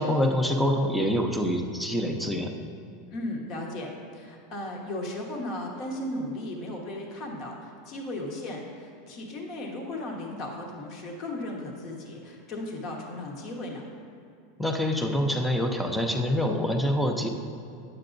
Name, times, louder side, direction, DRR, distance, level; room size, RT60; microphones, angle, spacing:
voice 1, 0.0-2.5 14.6-17.3, equal, 5° left, 3 dB, 0.7 m, -26 dB
voice 2, 3.1-13.9, left 1 dB, 45° left, 0 dB, 1.2 m, -36 dB
9.4 x 7.6 x 2.6 m, 2.6 s
supercardioid pair, 115°, 0 cm